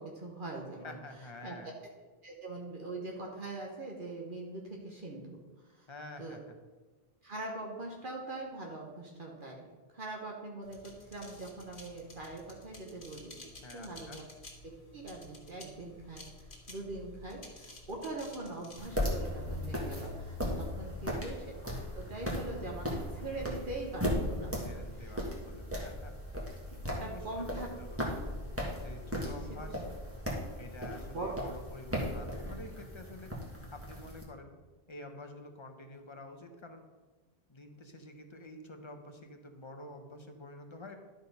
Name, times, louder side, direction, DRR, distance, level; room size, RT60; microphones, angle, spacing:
voice 1, 0.0-0.9 1.4-1.6 2.2-5.4 5.7-5.9 6.2-6.4 7.2-9.7 9.9-13.4 13.7-14.3 14.6-16.3 16.7-21.5 21.9-24.8 25.0-25.1 27.0-27.7 29.2-29.3 30.9-31.3, right 2 dB, 55° right, -1 dB, 1.3 m, -42 dB
voice 2, 0.8-1.8 5.9-6.6 13.6-14.2 20.9-21.2 24.5-26.1 27.0-28.2 28.8-29.8 30.5-33.4 33.7-34.5 34.9-36.8 37.5-41.0, left 1 dB, 30° left, 5 dB, 0.9 m, -49 dB
sound 1, 10.6-18.9, left 2 dB, 55° left, 1.6 m, -52 dB
sound 2, 18.8-34.2, equal, 15° right, 1.6 m, -37 dB
11.5 x 4.3 x 5.3 m, 1.3 s
omnidirectional pair, 1.0 m